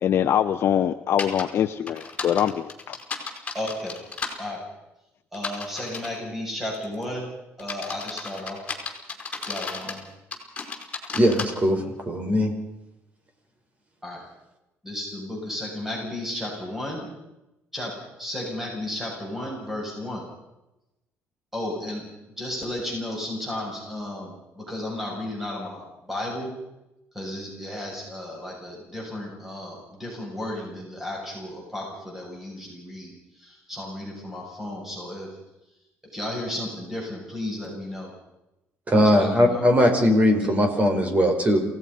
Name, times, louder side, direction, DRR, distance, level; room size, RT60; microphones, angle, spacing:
voice 1, 0.0-2.9, left 10 dB, 55° left, 8 dB, 0.9 m, -23 dB
sound 1, 1.2-1.4 1.9-4.3 5.3-6.2 6.7-7.0 7.6-10.0 10.3-11.5, left 4 dB, 25° left, 5.1 m, -33 dB
voice 2, 3.5-4.0 4.4-4.6 5.3-7.3 7.6-8.6 9.4-10.0 14.0-14.2 14.8-17.1 17.7-17.9 18.2-20.2 21.5-22.0 22.4-25.8 26.1-26.5 27.1-33.1 33.4-35.3 36.1-38.1 39.1-39.7, left 1 dB, 5° right, -2 dB, 7.6 m, -33 dB
voice 3, 11.1-12.5 38.9-41.6, equal, 30° right, 5 dB, 5.2 m, -20 dB
28.0 x 17.5 x 5.5 m, 0.93 s
cardioid pair, 125°, 5 cm